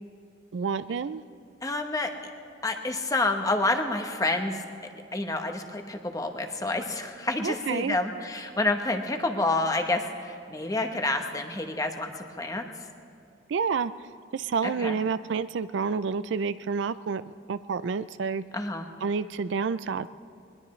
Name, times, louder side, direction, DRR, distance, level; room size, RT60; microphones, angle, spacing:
voice 1, 0.5-1.2 7.4-8.0 13.5-13.9 14.3-17.2 17.5-18.4 19.0-20.1, right 5 dB, 70° right, 14 dB, 0.4 m, -29 dB
voice 2, 1.6-2.1 2.6-4.5 5.1-12.6 14.6-15.0 18.5-18.9, left 2 dB, 20° left, 5 dB, 1.0 m, -28 dB
21.5 x 20.0 x 3.2 m, 2.5 s
head